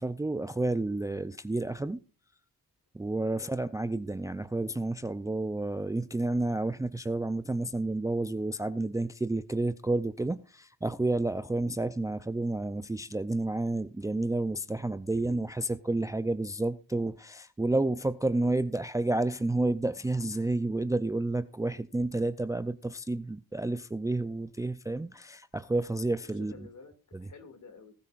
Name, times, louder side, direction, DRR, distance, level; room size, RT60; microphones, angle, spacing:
voice 1, 0.0-2.0 2.9-26.5 27.1-27.3, right 2 dB, 10° right, 13 dB, 0.5 m, -30 dB
voice 2, 26.2-27.9, left 4 dB, 50° left, 8 dB, 2.4 m, -51 dB
20.0 x 9.7 x 2.5 m, 0.34 s
cardioid pair, 95°, 38 cm